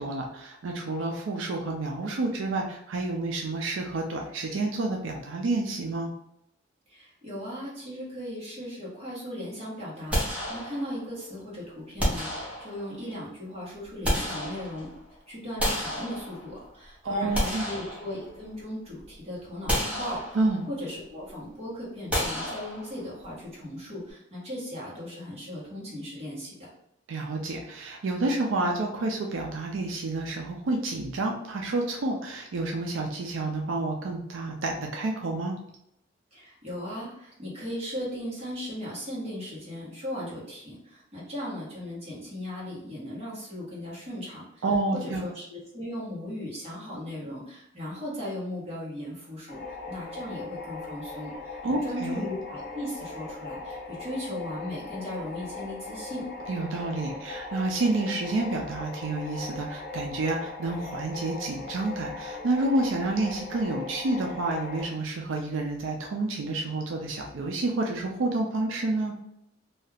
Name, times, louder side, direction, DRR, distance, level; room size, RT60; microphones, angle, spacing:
voice 1, 0.0-6.1 17.0-17.7 20.3-20.6 27.1-35.6 44.6-45.2 51.6-52.3 56.5-69.1, right 2 dB, 85° right, 1 dB, 0.4 m, -29 dB
voice 2, 6.9-14.9 15.3-20.4 20.7-26.7 36.3-44.6 44.9-56.3, left 1 dB, 35° right, -7 dB, 1.3 m, -37 dB
sound 1, 10.1-11.1 12.0-13.0 13.7-15.0 15.6-16.7 17.1-18.6 19.0-19.1 19.7-20.7 22.1-23.2, equal, 5° right, 0.8 m, -31 dB
sound 2, 49.5-64.8, left 3 dB, 50° left, 0.7 m, -39 dB
2.7 x 2.3 x 3.3 m, 0.78 s
head